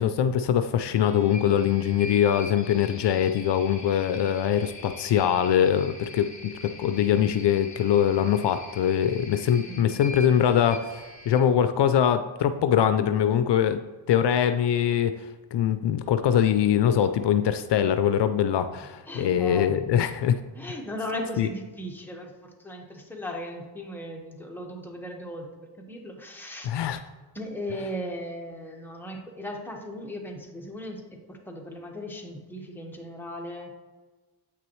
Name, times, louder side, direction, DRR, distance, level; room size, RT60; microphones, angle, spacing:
voice 1, 0.0-13.8 14.1-15.1 15.5-20.4 21.4-21.5 26.6-27.0, left 9 dB, 70° left, 10 dB, 0.5 m, -23 dB
sound 1, 0.9-11.4, left 2 dB, 40° left, 1.7 m, -43 dB
voice 2, 9.7-10.0 19.0-19.7 20.5-25.5 25.8-26.7 27.3-31.0 31.3-33.7, equal, 5° left, 0 dB, 1.3 m, -37 dB
8.4 x 5.9 x 3.1 m, 1.3 s
cardioid pair, 75°, 43 cm